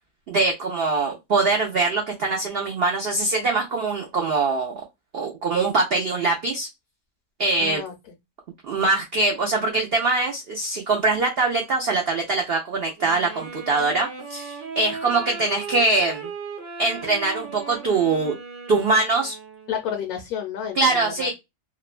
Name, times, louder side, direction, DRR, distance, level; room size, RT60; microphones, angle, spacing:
voice 1, 0.3-4.8 5.1-6.7 7.4-7.8 8.7-16.3 16.8-18.4 18.7-19.3 20.8-21.3, right 3 dB, 85° right, 1 dB, 0.5 m, -23 dB
voice 2, 7.6-7.9 19.7-21.3, left 7 dB, 70° left, 3 dB, 1.0 m, -30 dB
Wind instrument woodwind instrument, 13.0-19.9, right 5 dB, 40° right, 0.8 m, -37 dB
2.9 x 2.1 x 2.4 m, 0.21 s
omnidirectional pair, 1.8 m